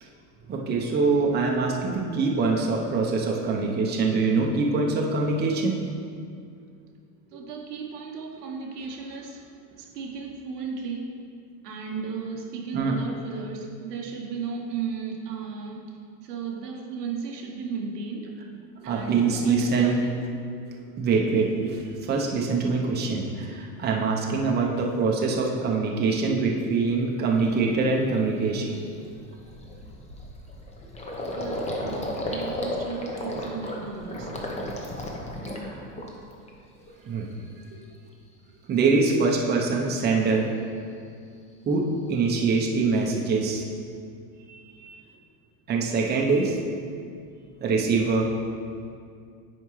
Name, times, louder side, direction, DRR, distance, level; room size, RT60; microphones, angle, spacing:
voice 1, 0.5-5.7 7.3-7.4 12.7-13.0 18.8-20.0 20.8-28.8 35.6-35.7 37.0-37.3 38.7-40.5 41.7-43.6 44.5-45.0 45.7-46.6 47.6-48.3, right 4 dB, 20° right, -1 dB, 0.8 m, -24 dB
voice 2, 7.3-11.1 11.6-18.4 18.8-20.2 31.3-34.4, right 5 dB, 90° right, 0 dB, 1.2 m, -35 dB
Gurgling, 26.8-26.9 27.4-27.6 28.0-28.2 28.4-36.5 36.8-37.5, left 1 dB, 15° left, 0.8 m, -34 dB
9.6 x 4.5 x 3.2 m, 2.3 s
hypercardioid pair, 115°, 46 cm